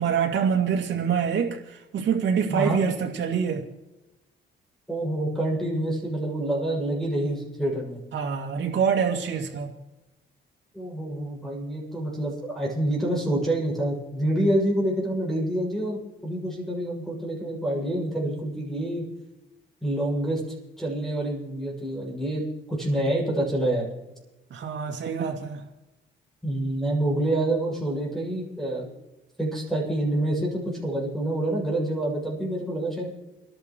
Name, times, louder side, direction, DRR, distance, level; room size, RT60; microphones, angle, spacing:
voice 1, 0.0-3.7 8.1-9.7 24.5-25.6, right 7 dB, 65° right, 2.5 m, -25 dB
voice 2, 2.5-2.8 4.9-8.0 10.7-19.0 19.8-20.4 20.8-23.9 26.4-28.9 29.4-33.1, right 1 dB, ahead, 6.8 m, -27 dB
30.0 x 11.5 x 3.2 m
cardioid pair, 90°, 20 cm